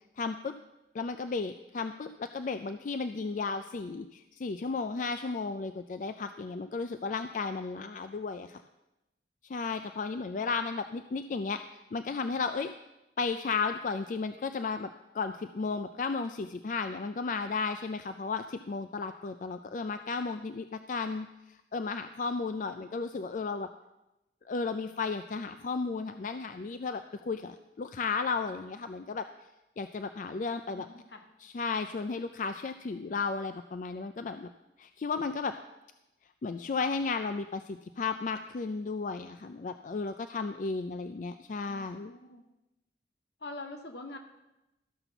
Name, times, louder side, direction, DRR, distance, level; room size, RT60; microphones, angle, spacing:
voice 1, 0.2-0.5 0.9-8.6 9.5-11.6 11.9-12.7 13.2-14.9 15.1-23.7 24.5-29.3 29.8-30.9 31.4-34.5 34.8-35.5 36.4-42.1, left 4 dB, 45° left, 9 dB, 0.4 m, -34 dB
voice 2, 30.7-31.3 41.7-42.4 43.4-44.2, left 2 dB, 75° left, 4 dB, 1.5 m, -44 dB
13.0 x 5.9 x 6.9 m, 0.95 s
head